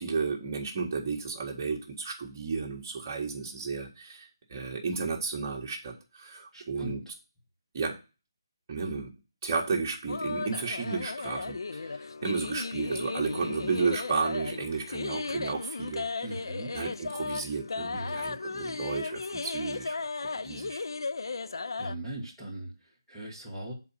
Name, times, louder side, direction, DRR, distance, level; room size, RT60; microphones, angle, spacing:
voice 1, 0.0-7.0 7.7-8.0 8.7-9.1 9.4-11.8 12.2-16.1 16.7-20.8, right 4 dB, 25° right, -1 dB, 1.6 m, -33 dB
voice 2, 6.5-7.1 16.2-16.7 17.9-18.2 21.6-23.7, right 1 dB, 5° left, -7 dB, 1.5 m, -40 dB
sound 1, 10.1-21.9, left 4 dB, 65° left, 0.3 m, -35 dB
6.7 x 4.1 x 5.7 m, 0.31 s
figure-of-eight pair, 165°, 2 cm